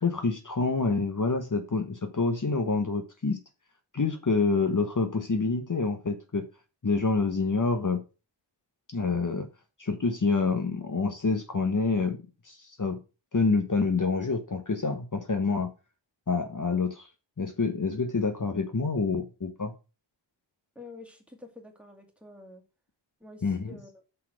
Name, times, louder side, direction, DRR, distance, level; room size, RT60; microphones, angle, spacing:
voice 1, 0.0-3.4 3.9-6.5 6.8-8.0 8.9-9.5 9.8-12.2 12.4-13.0 13.3-15.7 16.3-17.1 17.4-19.7 23.4-23.8, left 4 dB, 45° left, 6 dB, 1.2 m, -27 dB
voice 2, 20.8-22.6 23.2-24.0, left 3 dB, 5° right, 3 dB, 2.2 m, -48 dB
6.3 x 5.6 x 6.3 m, 0.30 s
wide cardioid pair, 90°, 44 cm